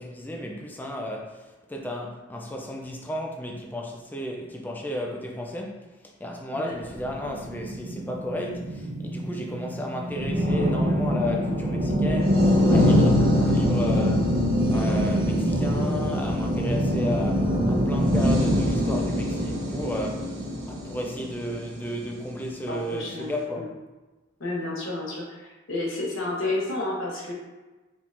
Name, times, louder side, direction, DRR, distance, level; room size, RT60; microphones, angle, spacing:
voice 1, 0.0-14.3 14.7-23.7, left 1 dB, 10° left, 1 dB, 0.4 m, -33 dB
sound 1, 6.9-22.3, equal, 80° right, 0.9 m, -25 dB
Bass guitar, 12.7-17.2, left 2 dB, 65° left, 0.6 m, -27 dB
voice 2, 13.2-13.7 22.7-23.7 24.4-27.3, left 2 dB, 85° left, -3 dB, 1.1 m, -31 dB
4.4 x 3.7 x 2.5 m, 1.2 s
head